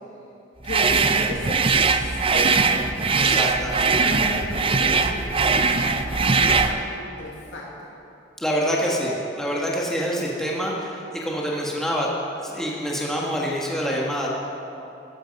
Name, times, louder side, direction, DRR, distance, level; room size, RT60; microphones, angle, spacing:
voice 1, 0.6-2.7 3.9-7.7, left 1 dB, 80° left, -3 dB, 1.7 m, -35 dB
sound 1, 0.7-6.8, right 4 dB, 30° right, 0.6 m, -21 dB
voice 2, 3.1-4.0 8.4-12.1 12.4-14.3, equal, 5° left, -4 dB, 1.5 m, -26 dB
15.0 x 13.0 x 5.3 m, 2.9 s
head